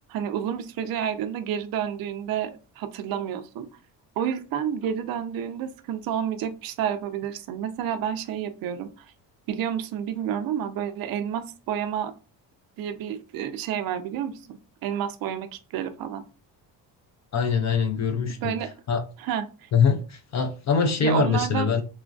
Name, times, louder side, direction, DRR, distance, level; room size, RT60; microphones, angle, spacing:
voice 1, 0.1-2.5 2.8-3.7 4.2-9.1 9.5-12.1 12.8-16.2 18.4-18.7 19.2-19.7 21.0-21.7, right 9 dB, 50° right, 0.5 m, -30 dB
voice 2, 17.3-18.5 18.9-19.0 19.7-21.8, left 6 dB, 40° left, 0.4 m, -23 dB
3.0 x 2.4 x 2.4 m
supercardioid pair, 75°, 47 cm